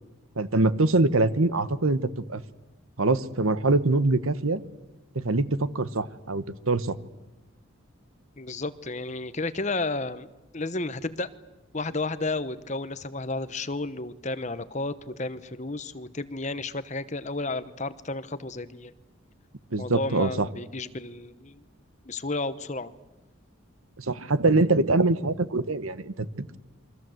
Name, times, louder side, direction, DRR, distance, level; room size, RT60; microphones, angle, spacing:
voice 1, 0.4-2.4 3.0-4.6 5.1-6.9 19.7-20.5 24.0-26.6, right 2 dB, 80° right, 15 dB, 1.2 m, -24 dB
voice 2, 8.4-10.3 10.5-11.3 11.7-18.9 19.8-21.6 22.1-22.9, left 2 dB, 35° left, 13 dB, 1.0 m, -32 dB
28.5 x 24.0 x 7.9 m, 1.0 s
head